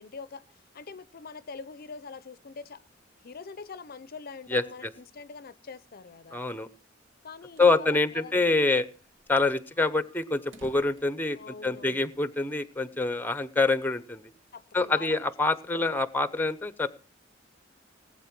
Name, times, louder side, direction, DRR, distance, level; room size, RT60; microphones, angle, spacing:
voice 1, 0.0-2.8 3.2-6.4 7.2-8.6 11.3-12.0 14.5-15.3 15.7-16.0, left 4 dB, 50° left, 0.6 m, -44 dB
voice 2, 6.3-6.7 7.6-8.9 9.3-14.3 14.7-16.9, left 3 dB, 10° left, 0.8 m, -26 dB
sound 1, 7.2-7.8 8.2-8.3 8.5-8.6 9.0-12.0, right 1 dB, 75° right, 2.0 m, -54 dB
19.0 x 8.7 x 6.0 m
head